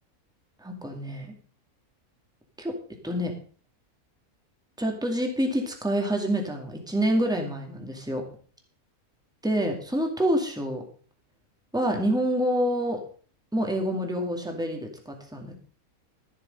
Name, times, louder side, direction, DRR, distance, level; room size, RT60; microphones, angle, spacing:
voice 1, 0.6-1.3 2.6-2.8 3.0-3.3 4.8-8.2 9.4-10.8 11.7-13.0 13.5-15.6, equal, 5° right, 2 dB, 2.2 m, -27 dB
13.5 x 8.2 x 5.3 m, 0.43 s
omnidirectional pair, 1.5 m